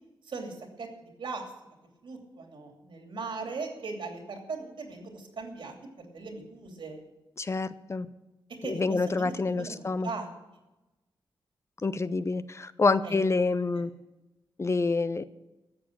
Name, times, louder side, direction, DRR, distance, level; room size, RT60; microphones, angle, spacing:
voice 1, 0.3-0.9 1.2-1.5 2.0-7.0 8.6-10.3 13.0-13.2 13.7-13.8, right 4 dB, 70° right, 3 dB, 2.8 m, -39 dB
voice 2, 7.4-8.1 8.6-10.1 11.8-13.9 14.6-15.2, left 3 dB, 35° left, 14 dB, 0.5 m, -27 dB
13.5 x 7.5 x 8.6 m, 1.0 s
wide cardioid pair, 105°, 9 cm